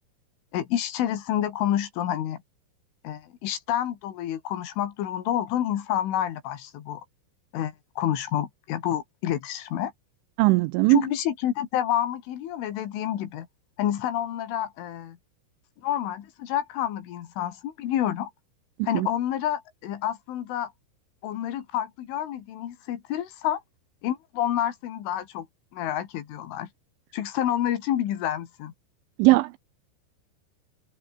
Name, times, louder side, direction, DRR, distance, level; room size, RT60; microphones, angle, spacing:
voice 1, 0.5-2.4 3.0-7.0 7.5-9.9 10.9-13.5 13.8-15.2 15.8-18.3 18.8-20.7 21.2-23.6 24.0-25.5 25.7-26.7 27.1-28.7, left 11 dB, 70° left, 4.6 m, -28 dB
voice 2, 10.4-11.1 18.9-19.1 29.2-29.6, right 21 dB, 85° right, 2.8 m, -19 dB
omnidirectional pair, 5.9 m